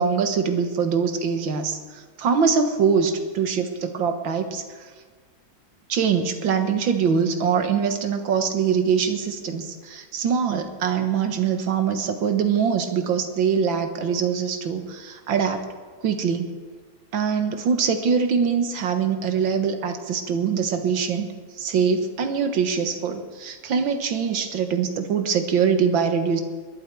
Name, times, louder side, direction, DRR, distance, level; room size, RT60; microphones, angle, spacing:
voice 1, 0.0-4.9 5.9-15.6 16.0-16.5 17.1-21.3 21.6-26.4, right 6 dB, 75° right, 7 dB, 2.0 m, -23 dB
20.5 x 11.5 x 4.6 m, 1.5 s
omnidirectional pair, 2.1 m